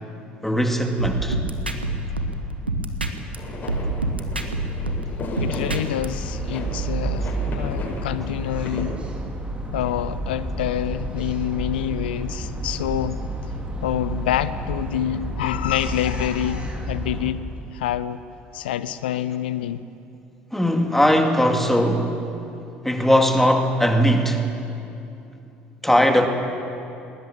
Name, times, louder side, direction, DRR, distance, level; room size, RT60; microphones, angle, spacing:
voice 1, 0.4-1.4 20.5-22.2 22.8-24.5 25.8-26.3, equal, 5° left, 2.5 m, -19 dB
sound 1, 1.0-3.4 3.7-6.1, right 2 dB, 90° right, 1.2 m, -26 dB
sound 2, 3.4-8.8, left 2 dB, 35° left, 7.0 m, -35 dB
voice 2, 5.4-7.3 7.5-9.0 9.7-13.2 13.8-17.4 17.7-18.2 18.5-19.9, left 11 dB, 70° left, 0.6 m, -27 dB
sound 3, 6.0-17.3, right 1 dB, 20° right, 3.5 m, -30 dB
20.0 x 19.5 x 8.9 m
figure-of-eight pair, 55°, 5 cm